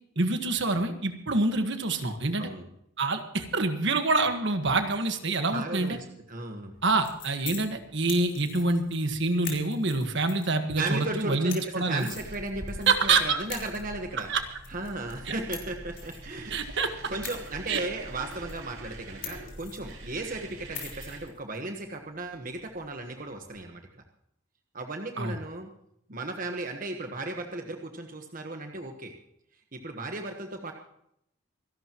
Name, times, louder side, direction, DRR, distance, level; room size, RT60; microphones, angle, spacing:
voice 1, 0.1-2.5 3.0-6.0 6.8-12.1 12.9-13.4 14.3-14.4 15.2-15.3 16.5-17.1 17.7-17.8 25.2-25.4, right 3 dB, 60° right, 7 dB, 1.5 m, -26 dB
voice 2, 5.5-6.7 10.8-14.3 14.7-16.6 17.1-24.0 24.7-25.7 26.1-29.1 29.7-30.7, right 2 dB, 40° right, 4 dB, 1.2 m, -35 dB
sound 1, 6.7-23.6, left 9 dB, 60° left, 3.8 m, -46 dB
sound 2, 12.1-21.2, right 1 dB, 80° right, 4.9 m, -44 dB
26.5 x 11.5 x 3.0 m, 0.74 s
head